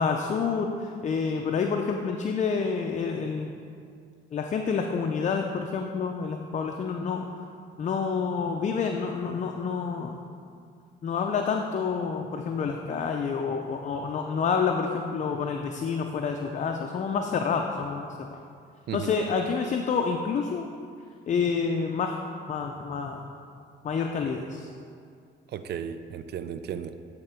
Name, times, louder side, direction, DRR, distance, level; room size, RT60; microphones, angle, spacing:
voice 1, 0.0-3.5 4.3-7.3 7.8-10.2 11.0-18.4 18.9-20.7 21.3-22.2 22.5-23.3 23.8-24.7, left 5 dB, 40° left, 3 dB, 0.4 m, -28 dB
voice 2, 25.5-27.0, right 8 dB, 55° right, 10 dB, 0.4 m, -34 dB
8.8 x 3.6 x 4.4 m, 2.3 s
cardioid pair, 90°, 20 cm